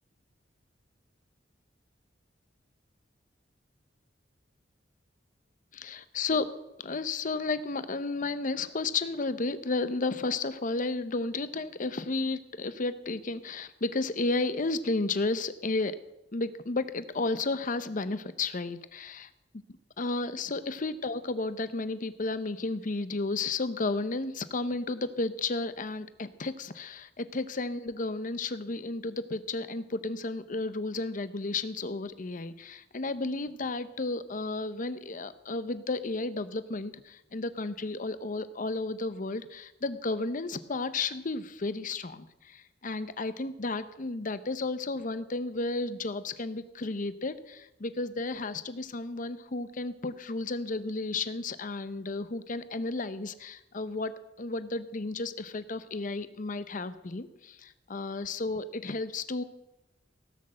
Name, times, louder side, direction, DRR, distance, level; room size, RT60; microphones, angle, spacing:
voice 1, 5.7-6.5 6.8-16.0 16.3-19.3 20.0-59.4, left 3 dB, 45° left, 13 dB, 0.8 m, -33 dB
17.0 x 6.5 x 7.7 m, 0.91 s
head